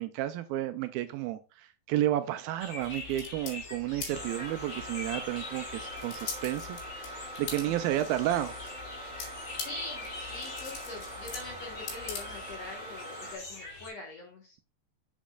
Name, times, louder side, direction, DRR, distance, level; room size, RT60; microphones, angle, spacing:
voice 1, 0.0-8.5, right 13 dB, 80° right, 2.3 m, -32 dB
sound 1, 2.6-13.9, left 3 dB, 40° left, 2.0 m, -45 dB
sound 2, 2.8-12.7, left 6 dB, 80° left, 3.8 m, -44 dB
sound 3, 4.1-13.4, right 1 dB, 15° right, 2.5 m, -43 dB
voice 2, 9.2-14.6, left 2 dB, 55° left, 1.9 m, -44 dB
7.3 x 7.2 x 2.3 m
omnidirectional pair, 4.5 m